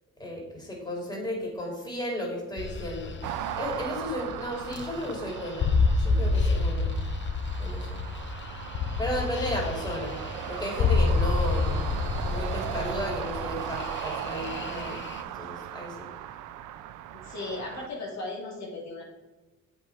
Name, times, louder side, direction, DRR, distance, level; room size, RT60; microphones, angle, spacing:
voice 1, 0.2-3.1 3.6-5.7 6.0-6.9 7.6-8.0 9.0-10.1 10.5-15.0 15.3-16.1, equal, 15° left, -1 dB, 2.9 m, -34 dB
sound 1, 2.6-15.2, left 4 dB, 40° left, 0.8 m, -29 dB
sound 2, 3.2-17.9, right 11 dB, 85° right, 0.5 m, -38 dB
voice 2, 17.2-19.0, left 2 dB, 65° left, -2 dB, 2.2 m, -36 dB
7.5 x 5.5 x 4.7 m, 1.1 s
cardioid pair, 90°, 30 cm